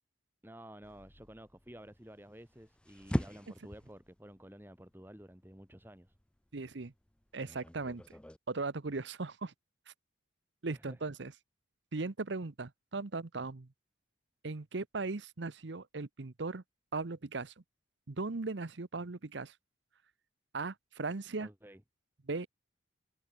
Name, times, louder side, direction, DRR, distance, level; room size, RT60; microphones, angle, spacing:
voice 1, 0.4-6.1 10.7-11.0 21.4-21.8, equal, 10° right, 2.0 m, -52 dB
sound 1, 0.8-8.4, equal, 5° left, 0.4 m, -43 dB
voice 2, 6.5-6.9 7.3-8.0 8.5-9.5 10.6-11.3 11.9-13.7 14.4-16.6 16.9-17.5 18.1-19.5 20.5-21.5 22.2-22.5, right 3 dB, 70° right, 0.9 m, -38 dB
head